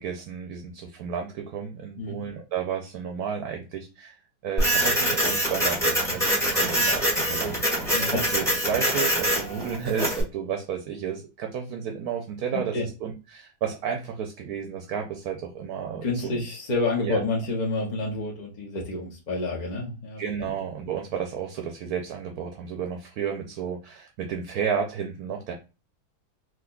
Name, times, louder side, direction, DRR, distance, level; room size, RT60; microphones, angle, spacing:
voice 1, 0.0-4.2 4.4-7.5 8.3-16.4 17.0-17.2 20.2-25.5, right 7 dB, 70° right, 3 dB, 1.0 m, -32 dB
Printer, 4.6-10.2, equal, ahead, 1.3 m, -24 dB
voice 2, 7.9-8.2 12.5-12.8 16.0-20.2, left 2 dB, 50° left, -2 dB, 0.5 m, -29 dB
3.7 x 2.8 x 2.3 m, 0.30 s
omnidirectional pair, 1.9 m